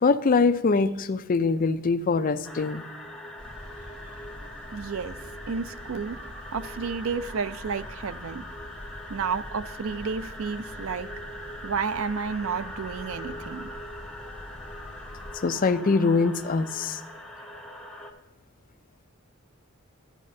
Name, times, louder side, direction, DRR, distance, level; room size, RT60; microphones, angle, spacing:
voice 1, 0.0-2.8 15.4-17.0, left 4 dB, 40° left, 10 dB, 0.4 m, -23 dB
sound 1, 2.4-18.1, left 1 dB, ahead, 0.8 m, -42 dB
sound 2, 3.4-15.3, left 1 dB, 25° right, 2.6 m, -45 dB
voice 2, 4.7-5.1 5.5-6.2 6.5-8.4 9.1-11.1 11.6-13.7, right 5 dB, 70° right, 13 dB, 0.4 m, -31 dB
12.0 x 8.5 x 2.7 m, 1.1 s
head